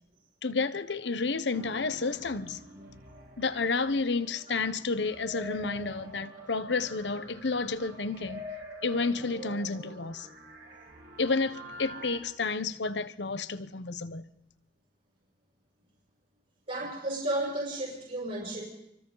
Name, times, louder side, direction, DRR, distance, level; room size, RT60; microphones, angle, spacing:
voice 1, 0.4-2.6 3.4-8.4 8.8-10.3 11.2-14.2, left 4 dB, 85° left, 1.0 m, -31 dB
sound 1, 1.5-12.2, equal, 70° right, 6.9 m, -46 dB
voice 2, 16.7-18.6, right 1 dB, 45° right, 6.1 m, -33 dB
28.5 x 24.5 x 4.0 m
head